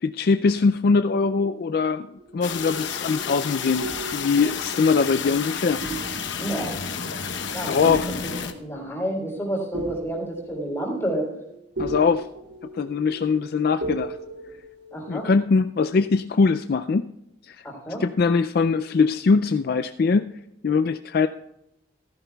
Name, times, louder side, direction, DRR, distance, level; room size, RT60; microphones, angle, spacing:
voice 1, 0.0-2.1 2.3-3.8 4.1-5.8 7.7-8.2 11.8-12.3 12.7-14.2 15.1-17.1 17.4-17.7 18.0-21.3, left 4 dB, 50° left, 10 dB, 0.4 m, -22 dB
sound 1, 2.2-3.2 3.8-5.5 5.8-15.3, right 2 dB, 80° right, 2.8 m, -38 dB
sound 2, 2.4-8.5, left 6 dB, 75° left, 0.9 m, -31 dB
voice 2, 6.4-6.8 7.5-7.8 8.2-11.3 14.9-15.3 17.6-18.0, right 1 dB, 15° left, -1 dB, 3.4 m, -29 dB
15.0 x 14.0 x 2.3 m, 0.84 s
head